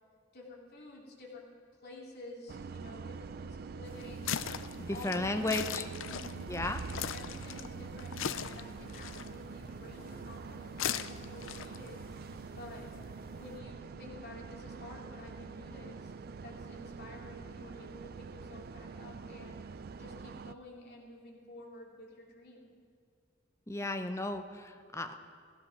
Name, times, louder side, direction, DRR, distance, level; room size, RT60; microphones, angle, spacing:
voice 1, 0.3-1.5 1.8-4.3 4.9-5.7 6.0-6.5 7.1-12.0 12.5-12.9 13.3-16.1 16.4-22.7, left 1 dB, 55° left, -2 dB, 3.0 m, -50 dB
sound 1, 2.5-20.6, right 5 dB, 50° right, 0.4 m, -45 dB
sound 2, 3.9-13.6, left 9 dB, 70° left, 0.5 m, -41 dB
voice 2, 4.8-5.8 6.5-6.8 23.7-25.1, left 2 dB, 15° left, 7 dB, 0.8 m, -34 dB
16.0 x 14.5 x 5.9 m, 2.1 s
head